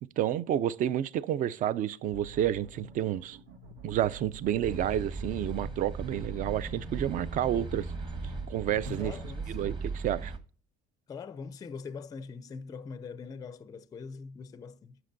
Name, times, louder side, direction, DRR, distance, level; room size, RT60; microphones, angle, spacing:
voice 1, 0.2-3.4 3.8-7.9 8.5-9.1 9.5-10.3, right 11 dB, 45° right, 0.4 m, -30 dB
sound 1, 2.1-9.1, right 2 dB, 80° right, 1.4 m, -47 dB
sound 2, 4.6-10.4, right 4 dB, 25° right, 1.1 m, -38 dB
voice 2, 9.0-9.8 11.1-15.0, left 5 dB, 20° left, 0.4 m, -42 dB
11.0 x 6.7 x 2.6 m
cardioid pair, 130°, 19 cm